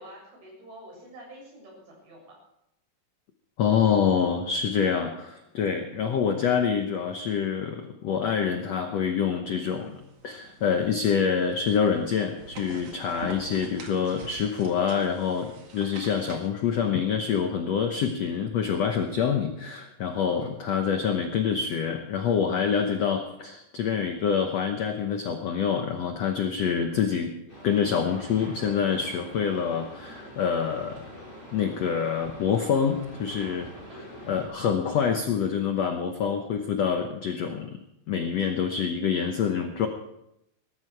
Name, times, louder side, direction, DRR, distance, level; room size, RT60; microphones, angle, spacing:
voice 1, 0.0-2.3 33.9-34.4, equal, 70° right, -2 dB, 9.0 m, -47 dB
voice 2, 3.6-27.3 27.6-31.0 31.5-33.7 34.3-37.8 38.1-39.9, left 7 dB, 75° left, 5 dB, 1.5 m, -26 dB
sound 1, 9.8-16.5, right 4 dB, 45° right, 2.5 m, -46 dB
sound 2, 27.5-34.5, equal, 10° left, 6.3 m, -45 dB
19.5 x 14.0 x 4.7 m, 0.82 s
omnidirectional pair, 4.5 m